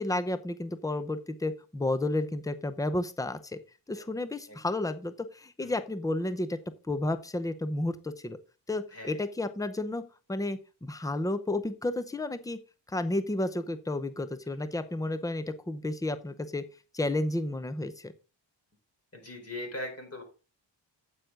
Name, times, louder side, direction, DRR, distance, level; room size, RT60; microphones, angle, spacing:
voice 1, 0.0-3.6 3.9-6.6 6.9-8.4 8.7-10.0 10.3-12.6 12.9-16.6 16.9-18.1, left 2 dB, 10° left, 12 dB, 0.7 m, -32 dB
voice 2, 19.1-20.2, left 1 dB, 30° left, 2 dB, 4.0 m, -40 dB
9.2 x 8.0 x 3.7 m, 0.32 s
wide cardioid pair, 120°, 46 cm